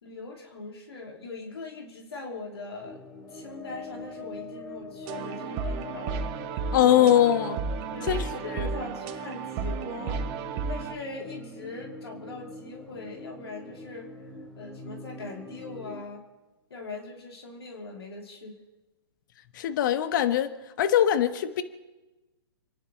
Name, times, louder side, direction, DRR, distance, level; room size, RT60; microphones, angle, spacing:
voice 1, 0.0-3.0 3.3-6.2 7.9-16.2 16.7-18.6, left 3 dB, 75° left, 3.2 m, -41 dB
sound 1, 2.8-16.0, left 2 dB, 5° left, 2.5 m, -43 dB
sound 2, 5.1-10.9, right 5 dB, 35° right, 1.3 m, -33 dB
voice 2, 6.7-7.6 8.1-8.7 19.5-21.6, left 11 dB, 50° left, 1.2 m, -22 dB
29.5 x 10.5 x 4.2 m
hypercardioid pair, 125°, 13 cm